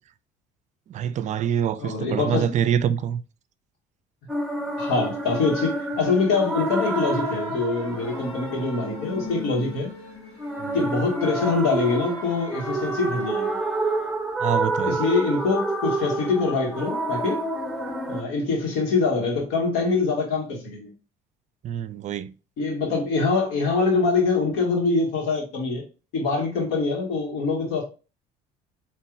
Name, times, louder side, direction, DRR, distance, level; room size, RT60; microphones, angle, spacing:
voice 1, 0.9-3.2 10.6-10.8 14.4-15.0 21.6-22.3, right 9 dB, 45° right, 0.4 m, -25 dB
voice 2, 1.8-2.6 4.8-9.9 10.7-13.6 14.8-17.4 18.1-20.9 22.6-25.8 26.1-27.8, left 4 dB, 80° left, 1.9 m, -24 dB
sound 1, 4.3-18.2, right 2 dB, ahead, 0.9 m, -29 dB
sound 2, 6.9-14.4, left 1 dB, 35° left, 1.2 m, -45 dB
4.6 x 3.1 x 2.6 m
supercardioid pair, 100°, 17 cm